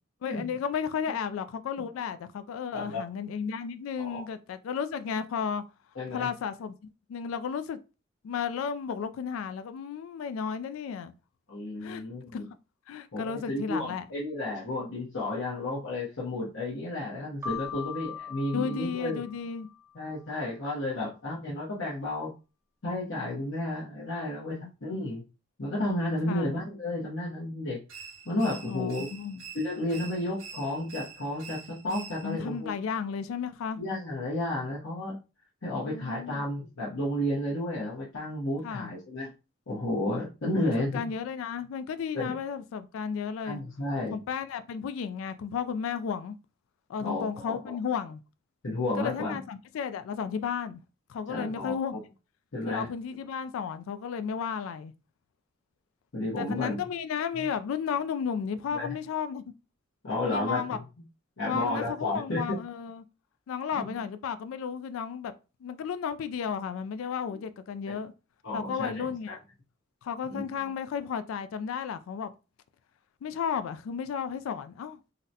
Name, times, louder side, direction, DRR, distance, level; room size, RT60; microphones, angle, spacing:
voice 1, 0.2-5.6 6.1-7.8 8.2-11.1 11.8-12.0 12.3-12.4 12.9-14.1 18.5-19.7 24.5-25.1 26.3-26.5 28.7-29.4 32.2-33.8 35.8-36.4 38.6-38.9 40.5-43.6 44.1-46.4 46.9-48.2 49.0-50.8 51.1-52.0 52.7-54.9 56.4-59.4 60.3-60.8 61.5-63.0 63.5-65.3 65.6-68.1 68.5-69.4 70.0-72.3 73.2-75.0, left 7 dB, 85° left, 0.3 m, -33 dB
voice 2, 2.7-3.0 4.0-4.3 6.0-6.3 11.5-12.4 13.1-19.2 19.9-22.3 22.8-25.2 25.6-27.8 28.2-29.1 29.5-32.7 33.8-35.2 35.6-39.3 39.7-41.1 42.1-42.3 43.4-44.1 47.0-47.8 48.6-49.4 51.3-51.8 52.5-52.9 56.1-56.8 57.3-57.4 58.7-59.0 60.0-60.8 61.4-62.6 63.8-64.0 68.4-69.4 70.2-70.5, left 1 dB, 70° left, 0.9 m, -32 dB
Keyboard (musical), 17.4-20.0, left 7 dB, 15° right, 0.3 m, -40 dB
sound 1, 27.9-32.5, right 6 dB, 90° right, 0.7 m, -46 dB
3.9 x 2.1 x 2.7 m
head